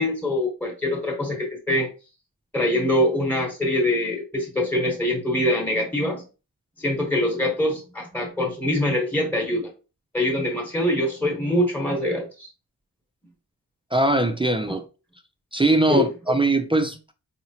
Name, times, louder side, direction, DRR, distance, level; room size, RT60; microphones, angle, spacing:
voice 1, 0.0-1.9 2.5-6.2 6.8-9.7 10.1-12.5 14.7-14.8 15.9-16.1, left 1 dB, 5° left, 1.1 m, -24 dB
voice 2, 13.9-14.8 15.5-17.1, right 2 dB, 15° right, 0.3 m, -21 dB
4.6 x 2.9 x 2.8 m
wide cardioid pair, 145°, 36 cm